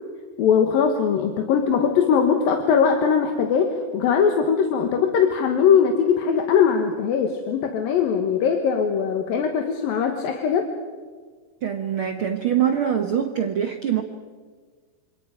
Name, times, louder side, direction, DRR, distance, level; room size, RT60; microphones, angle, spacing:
voice 1, 0.4-10.7, left 7 dB, 75° left, 4 dB, 3.1 m, -20 dB
voice 2, 11.6-14.0, right 9 dB, 75° right, 5 dB, 1.2 m, -23 dB
27.5 x 25.0 x 5.2 m, 1.6 s
omnidirectional pair, 4.3 m